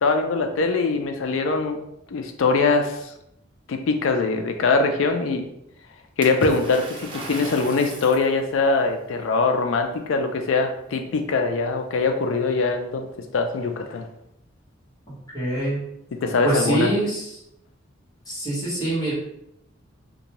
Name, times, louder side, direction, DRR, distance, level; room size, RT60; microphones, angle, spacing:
voice 1, 0.0-1.8 2.1-3.1 3.7-5.4 6.2-13.1 13.3-14.1 16.1-16.9, left 3 dB, 75° left, 5 dB, 0.4 m, -22 dB
Water / Splash splatter, 6.2-8.3, right 2 dB, 25° right, 0.4 m, -34 dB
voice 2, 15.3-15.8 16.4-17.3 18.3-19.1, right 1 dB, 20° left, -8 dB, 1.2 m, -24 dB
2.6 x 2.2 x 2.9 m, 0.79 s
head